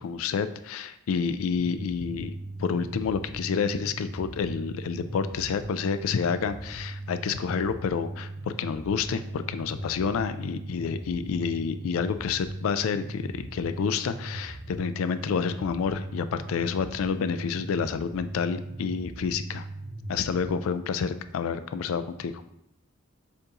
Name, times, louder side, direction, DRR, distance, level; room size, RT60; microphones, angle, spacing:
voice 1, 0.0-2.3 2.6-19.6 20.1-22.3, left 6 dB, 75° left, 11 dB, 0.3 m, -29 dB
sound 1, 1.5-20.6, right 1 dB, 15° right, 0.6 m, -39 dB
6.7 x 2.6 x 2.8 m, 0.77 s
head